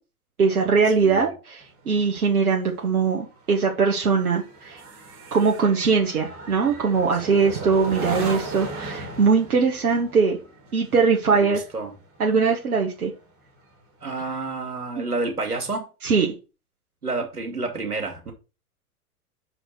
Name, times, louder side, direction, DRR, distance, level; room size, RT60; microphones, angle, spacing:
voice 1, 0.4-4.8 5.3-10.4 10.7-11.6 12.2-13.1 15.0-15.1 16.0-16.3, right 5 dB, 75° right, 1.8 m, -21 dB
voice 2, 1.0-1.3 7.3-8.0 11.3-12.0 14.0-15.9 17.0-18.3, right 3 dB, 90° right, 2.5 m, -30 dB
sound 1, 1.6-13.3 13.7-14.0, right 2 dB, 30° right, 3.4 m, -37 dB
6.4 x 5.0 x 6.2 m
figure-of-eight pair, 105°, 45 cm